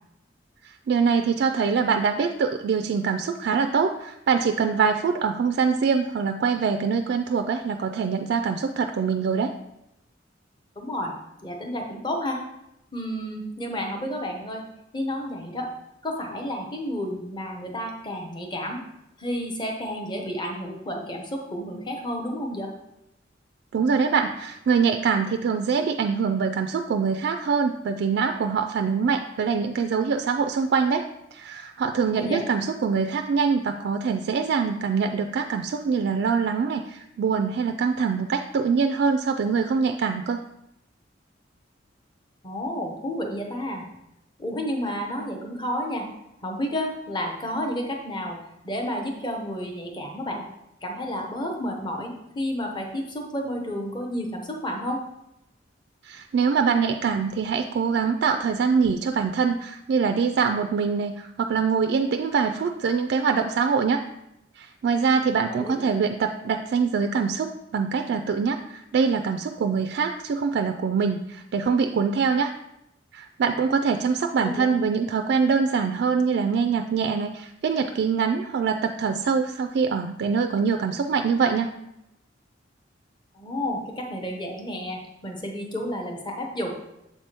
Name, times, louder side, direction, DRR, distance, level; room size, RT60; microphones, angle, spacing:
voice 1, 0.6-9.5 23.7-40.4 56.0-64.0 64.6-72.5 73.1-81.7, right 5 dB, 60° right, 6 dB, 0.3 m, -24 dB
voice 2, 10.8-11.1 11.4-12.4 12.9-14.6 14.9-15.7 16.0-18.8 19.2-22.7 32.1-32.4 42.4-43.9 44.4-46.1 46.4-48.4 48.6-50.5 50.8-55.0 65.6-65.8 74.4-74.7 83.3-86.7, equal, 25° left, 2 dB, 0.9 m, -31 dB
7.2 x 3.5 x 4.3 m, 0.86 s
head